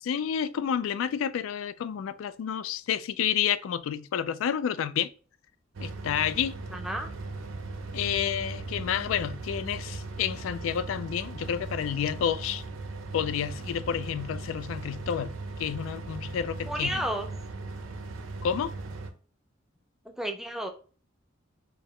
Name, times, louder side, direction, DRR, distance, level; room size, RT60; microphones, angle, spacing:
voice 1, 0.0-5.1 5.8-6.6 7.9-12.6 13.1-15.3 15.6-17.0 18.4-18.7, left 8 dB, 85° left, 0.3 m, -30 dB
sound 1, 5.7-19.1, right 3 dB, 85° right, 0.5 m, -38 dB
voice 2, 6.7-7.1 16.7-17.3 20.2-20.7, equal, ahead, 0.4 m, -31 dB
4.7 x 2.0 x 3.1 m
head